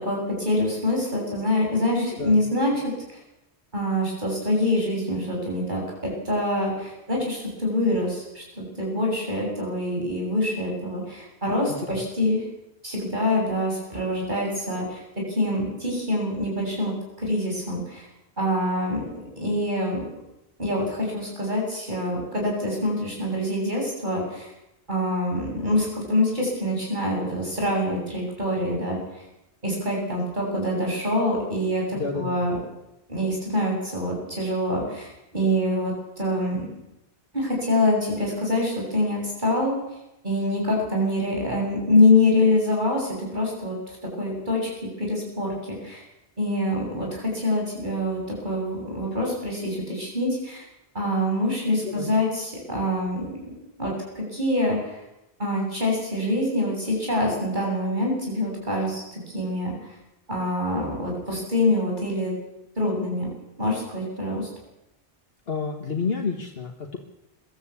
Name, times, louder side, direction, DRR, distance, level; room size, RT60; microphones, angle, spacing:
voice 1, 0.0-2.9 3.7-12.4 12.8-15.0 15.3-18.0 18.4-19.0 19.4-20.0 20.6-24.5 24.9-29.0 29.6-32.6 33.1-36.6 37.3-39.8 40.2-43.8 44.2-44.7 45.0-46.0 46.4-50.6 50.9-53.3 53.8-55.0 55.4-59.7 60.3-62.3 62.8-63.3 63.6-64.5, left 1 dB, 45° right, -1 dB, 8.1 m, -25 dB
voice 2, 2.0-2.4 11.9-12.0 32.0-32.4 51.8-52.1 65.5-67.0, left 5 dB, 65° left, 3 dB, 1.8 m, -30 dB
23.0 x 13.5 x 8.4 m, 0.89 s
omnidirectional pair, 1.1 m